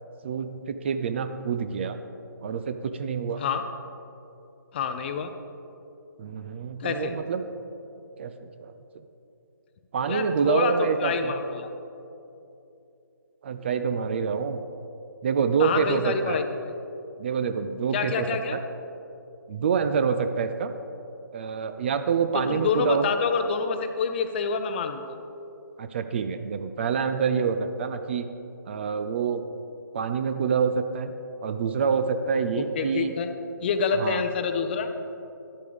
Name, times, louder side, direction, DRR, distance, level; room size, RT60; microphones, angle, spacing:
voice 1, 0.2-2.0 2.4-3.4 6.2-7.4 8.2-8.7 9.9-11.3 13.4-14.6 15.2-16.4 17.2-18.3 18.5-18.6 19.5-20.7 21.3-23.0 25.8-28.3 28.7-29.4 29.9-31.1 31.4-33.1 34.0-34.2, right 6 dB, 35° right, 9 dB, 0.4 m, -26 dB
voice 2, 4.7-5.3 6.8-7.1 10.1-11.7 15.6-16.4 17.9-18.6 22.3-25.0 32.5-33.3 33.6-34.9, left 5 dB, 30° left, 7 dB, 0.6 m, -27 dB
11.5 x 8.3 x 3.5 m, 2.8 s
figure-of-eight pair, 145°, 11 cm